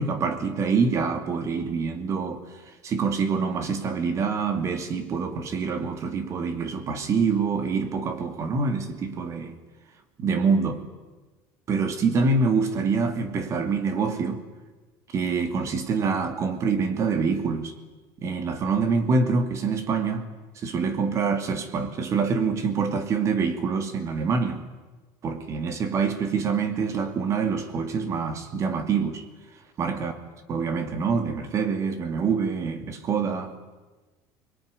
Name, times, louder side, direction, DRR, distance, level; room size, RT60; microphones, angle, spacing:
voice 1, 0.0-2.4 2.8-9.5 10.2-10.8 11.7-14.4 15.1-17.7 18.2-20.3 20.6-24.6 25.2-29.2 29.8-30.1 30.5-33.6, right 5 dB, 35° right, 2.7 m, -25 dB
24.0 x 22.0 x 9.9 m
cardioid pair, 140°, 8 cm